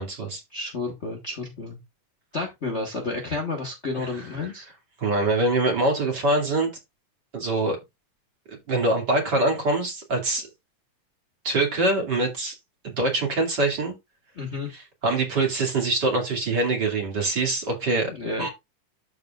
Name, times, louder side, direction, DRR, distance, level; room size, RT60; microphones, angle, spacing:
voice 1, 0.0-0.4 3.9-4.1 5.0-6.7 7.3-7.8 8.5-10.5 11.4-12.6 12.8-13.9 14.7-18.1 18.4-18.5, right 2 dB, 35° right, 2.6 m, -24 dB
voice 2, 0.5-1.8 2.3-4.6 14.4-14.7 18.1-18.5, left 3 dB, 80° left, 0.6 m, -31 dB
13.0 x 4.8 x 2.4 m
omnidirectional pair, 3.7 m